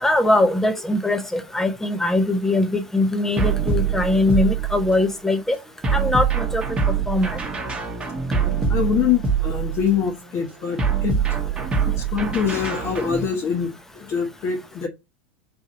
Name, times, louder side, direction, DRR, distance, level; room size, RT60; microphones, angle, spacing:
voice 1, 0.0-5.6 5.9-6.6 7.1-7.4, left 2 dB, 5° left, 0.7 m, -21 dB
sound 1, 3.4-5.1 5.8-10.0 10.8-13.3, right 6 dB, 15° right, 1.1 m, -24 dB
voice 2, 8.7-11.2 11.6-11.7 11.9-14.9, left 7 dB, 40° left, 1.0 m, -24 dB
3.8 x 2.6 x 4.1 m
hypercardioid pair, 90°, 6 cm